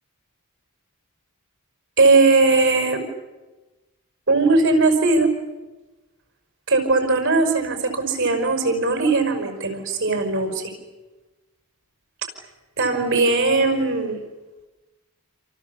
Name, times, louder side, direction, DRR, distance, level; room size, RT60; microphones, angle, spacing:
voice 1, 2.0-3.0 4.3-5.3 6.7-10.7 12.8-14.2, right 3 dB, 60° right, 6 dB, 5.5 m, -19 dB
28.5 x 28.0 x 7.2 m, 1.2 s
head